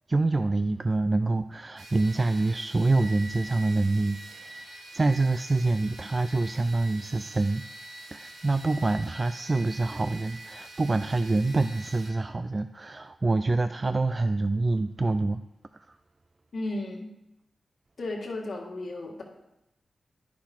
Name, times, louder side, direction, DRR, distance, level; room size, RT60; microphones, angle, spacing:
voice 1, 0.1-7.6 8.1-15.4 15.7-16.0, right 2 dB, 35° right, 10 dB, 0.3 m, -26 dB
sound 1, 1.8-12.1, right 1 dB, 80° right, 1.6 m, -45 dB
voice 2, 16.5-17.1 18.0-19.2, left 2 dB, 70° left, -1 dB, 1.9 m, -34 dB
9.6 x 6.0 x 4.3 m, 0.90 s
cardioid pair, 60°, 0 cm